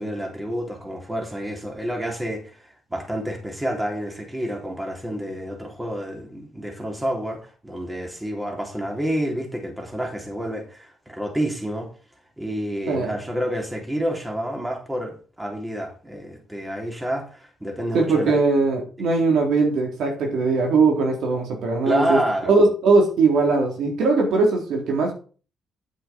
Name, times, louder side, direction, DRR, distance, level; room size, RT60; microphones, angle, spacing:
voice 1, 0.0-11.9 12.4-18.4 19.0-19.1 21.8-22.6, equal, 10° right, 1 dB, 3.6 m, -29 dB
voice 2, 17.9-22.2 22.5-25.1, right 3 dB, 75° right, 1 dB, 3.6 m, -20 dB
9.4 x 7.5 x 4.5 m, 0.37 s
cardioid pair, 90°, 0 cm